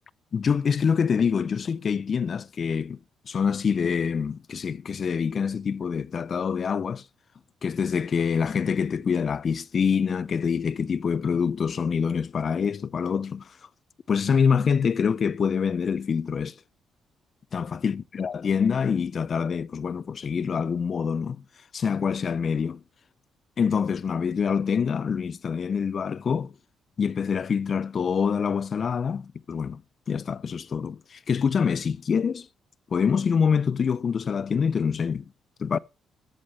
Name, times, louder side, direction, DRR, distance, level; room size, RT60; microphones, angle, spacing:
voice 1, 0.3-3.0 3.3-7.0 7.6-13.4 14.1-16.5 17.5-21.4 21.7-22.8 23.6-26.5 27.0-29.8 30.1-32.5 32.9-35.2 35.6-35.8, left 6 dB, 45° left, 0.5 m, -25 dB
12.5 x 6.6 x 5.4 m
cardioid pair, 90°, 0 cm